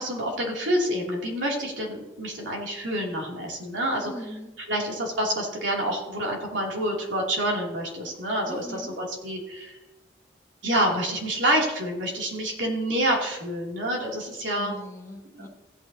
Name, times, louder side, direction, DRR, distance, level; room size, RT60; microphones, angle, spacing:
voice 1, 0.0-4.1 4.7-9.8 10.6-14.7 15.3-15.5, right 1 dB, 85° right, -1 dB, 2.9 m, -27 dB
voice 2, 3.9-4.5 8.5-9.0 14.4-15.5, left 1 dB, 15° left, 1 dB, 1.1 m, -40 dB
15.5 x 8.8 x 2.8 m, 1.0 s
head